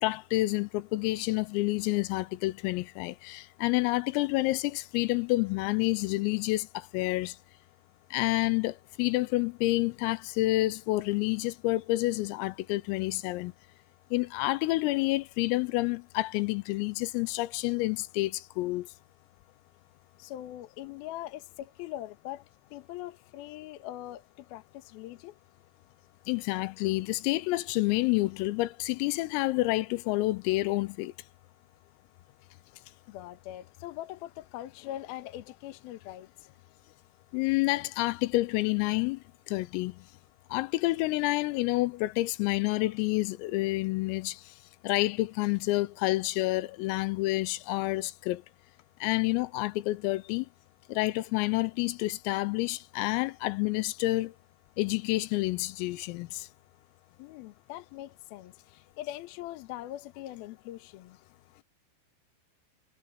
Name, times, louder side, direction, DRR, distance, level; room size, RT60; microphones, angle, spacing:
voice 1, 0.0-7.4 8.1-13.5 14.1-18.9 26.3-31.1 37.3-39.2 39.5-40.0 40.5-44.4 44.8-48.4 49.0-50.5 50.9-54.3 54.8-56.5, left 20 dB, 90° left, 3.5 m, -29 dB
voice 2, 20.2-22.4 22.7-25.4 33.1-36.5 57.2-61.2, left 14 dB, 70° left, 2.5 m, -42 dB
omnidirectional pair, 5.9 m